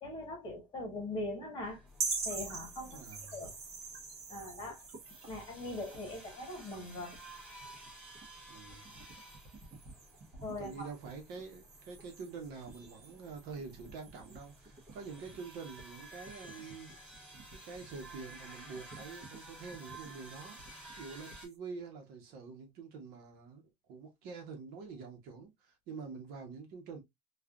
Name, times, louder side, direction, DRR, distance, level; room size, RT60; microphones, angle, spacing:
voice 1, 0.0-1.8 2.2-3.0 3.3-3.6 4.3-4.9 5.3-7.1 10.4-10.9, left 2 dB, 25° left, 1.3 m, -41 dB
Indian Street Ambience, 1.6-21.5, right 1 dB, 5° right, 1.8 m, -54 dB
sound 1, 1.9-21.6, right 4 dB, 35° right, 1.1 m, -47 dB
voice 2, 2.9-3.5 8.5-8.9 10.6-16.9 17.5-20.6 21.0-23.6 23.9-27.0, right 5 dB, 55° right, 1.1 m, -46 dB
3.2 x 2.5 x 2.4 m
cardioid pair, 150°, 19 cm